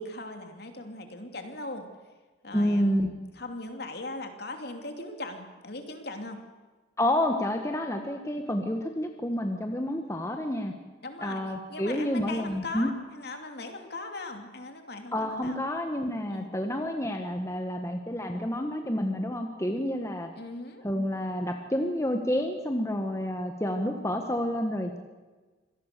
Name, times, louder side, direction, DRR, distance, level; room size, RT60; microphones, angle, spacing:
voice 1, 0.0-1.9 2.4-6.4 11.0-11.4 11.7-15.6 16.3-16.5 20.4-20.8, left 2 dB, 55° left, 5 dB, 2.8 m, -39 dB
voice 2, 2.5-3.1 7.0-10.7 11.2-12.9 15.1-20.3 20.8-25.0, left 1 dB, 15° left, 4 dB, 1.5 m, -29 dB
25.5 x 18.5 x 6.8 m, 1.3 s
head